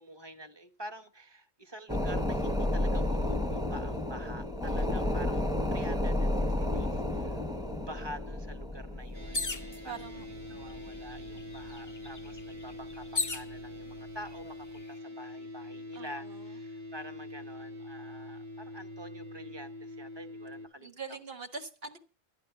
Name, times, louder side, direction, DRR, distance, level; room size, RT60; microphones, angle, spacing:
voice 1, 0.0-7.4 7.9-9.5 9.8-20.9, equal, 25° right, 1.2 m, -47 dB
sound 1, 1.9-11.9 12.3-12.4, left 1 dB, 5° right, 0.9 m, -32 dB
voice 2, 4.7-5.2 9.3-10.3 15.9-16.5 20.8-22.0, right 5 dB, 65° right, 1.5 m, -44 dB
sound 2, 9.1-20.7, left 1 dB, 45° right, 3.4 m, -44 dB
sound 3, 9.3-9.8 10.7-10.8 11.1-13.5 14.3-14.8, left 3 dB, 20° left, 0.7 m, -35 dB
11.5 x 11.0 x 5.8 m
omnidirectional pair, 1.1 m